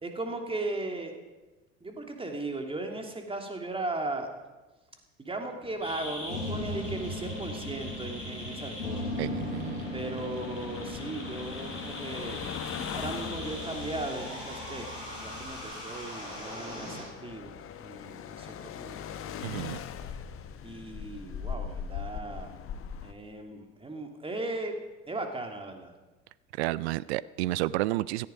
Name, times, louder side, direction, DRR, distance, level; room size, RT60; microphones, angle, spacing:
voice 1, 0.0-1.1 1.8-4.3 5.2-9.2 9.9-12.5 12.9-14.9 15.2-19.0 20.6-22.5 23.0-24.8 25.1-25.9, right 2 dB, 15° right, 3 dB, 3.0 m, -37 dB
sound 1, 5.6-23.1, left 8 dB, 35° left, 1.4 m, -42 dB
sound 2, 5.8-17.0, left 1 dB, 90° left, 5.4 m, -38 dB
voice 2, 9.2-9.9 19.4-19.8 26.6-28.3, right 17 dB, 60° right, 21 dB, 0.5 m, -31 dB
17.0 x 14.0 x 5.3 m, 1.2 s
figure-of-eight pair, 65°, 36 cm